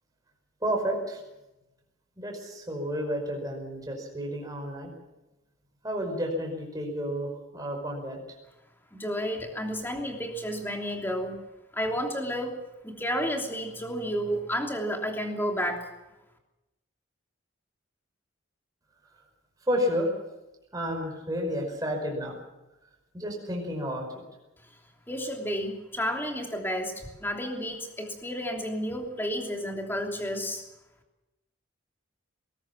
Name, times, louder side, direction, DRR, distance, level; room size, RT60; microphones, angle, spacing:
voice 1, 0.6-1.2 2.2-4.9 5.8-8.2 19.7-20.1 20.7-22.3 23.1-24.1, equal, 15° right, 1 dB, 5.3 m, -31 dB
voice 2, 8.9-11.4 11.7-12.6 12.8-15.9 24.6-24.7 25.1-30.7, equal, 10° left, 2 dB, 3.1 m, -31 dB
21.0 x 18.5 x 7.4 m, 0.99 s
head